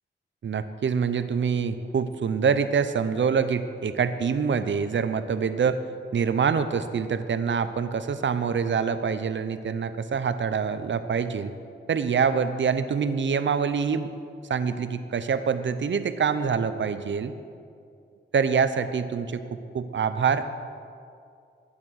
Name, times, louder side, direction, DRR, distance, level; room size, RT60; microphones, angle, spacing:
voice 1, 0.4-5.8 6.1-11.5 11.9-14.1 14.5-17.3 18.3-20.5, right 6 dB, 70° right, 11 dB, 0.7 m, -25 dB
12.5 x 8.9 x 6.4 m, 2.4 s
cardioid pair, 65°, 20 cm